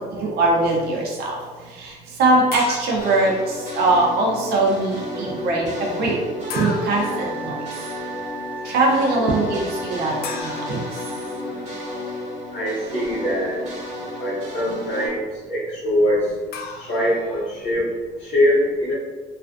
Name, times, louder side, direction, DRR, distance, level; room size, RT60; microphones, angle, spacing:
voice 1, 0.0-1.4 1.7-6.2 6.5-7.6 8.6-10.8 11.9-12.0, right 2 dB, 70° right, -2 dB, 0.5 m, -21 dB
sound 1, 2.5-3.8 6.5-7.2 10.2-11.8 16.5-17.7, left 4 dB, 65° left, 0.4 m, -36 dB
sound 2, 3.0-15.1, left 1 dB, 45° right, 1.1 m, -33 dB
Wind instrument woodwind instrument, 6.4-11.3, right 3 dB, 10° right, 0.3 m, -37 dB
voice 2, 12.5-13.6 14.2-16.3 16.9-17.9 18.2-18.9, equal, 40° left, -12 dB, 1.0 m, -22 dB
2.4 x 2.2 x 2.4 m, 1.4 s
cardioid pair, 110°, 17 cm